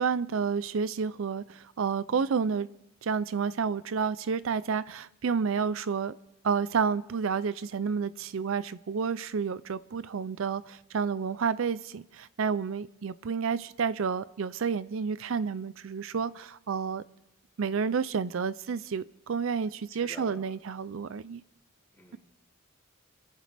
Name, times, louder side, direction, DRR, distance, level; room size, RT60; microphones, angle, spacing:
voice 1, 0.0-2.7 3.0-6.2 6.4-17.0 17.6-21.4, right 6 dB, 65° right, 0.4 m, -30 dB
voice 2, 20.0-20.5 21.9-22.2, left 2 dB, 10° left, 3.1 m, -49 dB
28.0 x 14.0 x 3.4 m
head